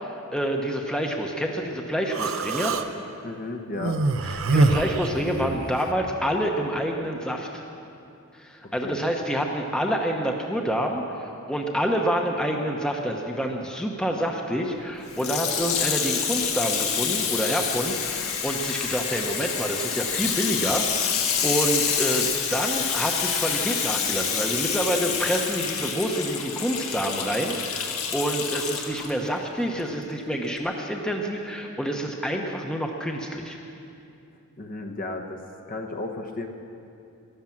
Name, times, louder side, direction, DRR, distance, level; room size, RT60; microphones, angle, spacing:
voice 1, 0.0-2.8 4.2-7.6 8.3-33.6, equal, 5° left, 1 dB, 0.9 m, -28 dB
Human voice, 2.1-2.9 3.8-5.8, right 3 dB, 65° right, 0.7 m, -24 dB
voice 2, 3.2-4.0 8.8-9.0 34.6-35.4 35.7-36.5, left 2 dB, 40° left, 3 dB, 1.0 m, -33 dB
Water tap faucet / Sink (filling or washing), 15.1-29.1 29.8-29.9, left 7 dB, 80° left, 1.5 m, -27 dB
13.5 x 12.0 x 7.3 m, 2.6 s
head